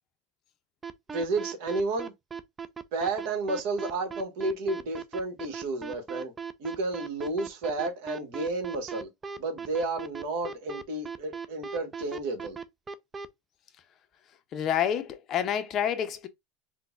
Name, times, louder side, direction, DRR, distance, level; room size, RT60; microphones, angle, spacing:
sound 1, 0.8-13.3, right 6 dB, 20° right, 0.3 m, -37 dB
voice 1, 1.1-2.1 2.9-6.3 6.6-9.1 9.4-12.6, right 2 dB, 70° right, 1.1 m, -31 dB
voice 2, 14.5-16.3, left 9 dB, 40° left, 0.5 m, -28 dB
3.7 x 2.1 x 2.3 m
supercardioid pair, 115°, 0 cm